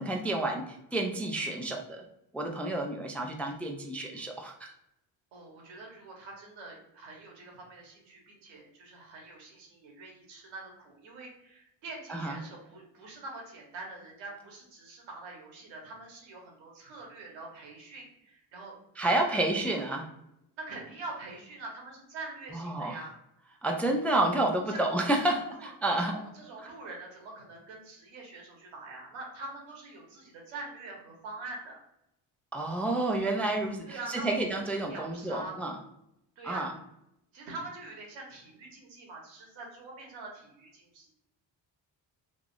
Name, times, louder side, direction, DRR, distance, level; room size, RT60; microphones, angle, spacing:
voice 1, 0.0-2.0 2.3-4.7 12.1-12.4 19.0-20.1 22.5-23.0 23.6-26.2 32.5-35.8 36.4-36.7, right 2 dB, 5° left, 2 dB, 0.3 m, -30 dB
voice 2, 5.3-18.7 19.2-19.5 20.6-23.1 23.6-23.7 24.7-25.7 26.0-31.8 33.9-34.3 34.6-35.7 36.4-36.7 37.3-41.1, right 2 dB, 80° right, -1 dB, 1.2 m, -44 dB
3.3 x 2.4 x 2.4 m, 0.81 s
supercardioid pair, 60°, 46 cm